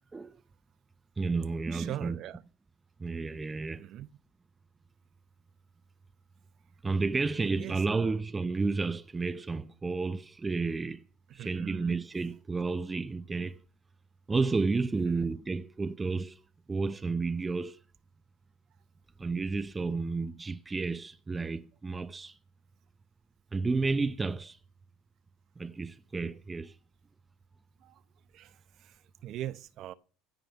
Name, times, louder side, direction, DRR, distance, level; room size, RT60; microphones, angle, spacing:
voice 1, 1.2-2.2 3.0-3.9 6.8-11.1 11.3-13.6 14.3-16.4 16.7-17.8 19.2-22.4 23.5-24.6 25.6-26.8, right 4 dB, 20° right, 0.6 m, -31 dB
voice 2, 1.7-2.4 3.8-4.1 7.6-8.2 11.3-12.0 13.4-13.5 15.0-15.3 27.8-28.0 28.3-29.9, right 12 dB, 55° right, 0.9 m, -42 dB
15.5 x 5.3 x 9.0 m
supercardioid pair, 90°, 0 cm